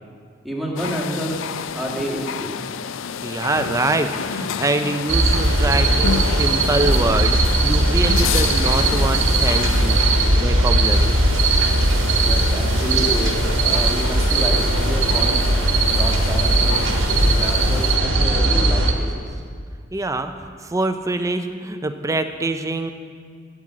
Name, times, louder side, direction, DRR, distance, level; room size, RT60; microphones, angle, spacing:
voice 1, 0.4-1.4 1.7-2.5 12.2-13.3 13.6-15.5 15.8-16.8 17.2-19.2, equal, ahead, -3 dB, 1.8 m, -29 dB
sound 1, 0.8-18.0, left 7 dB, 80° left, 0.4 m, -30 dB
voice 2, 3.2-10.0 10.3-11.2 19.9-22.9, right 2 dB, 15° right, 8 dB, 0.5 m, -24 dB
sound 2, 5.1-18.9, right 2 dB, 80° right, 1.3 m, -18 dB
9.7 x 8.8 x 7.4 m, 2.1 s
head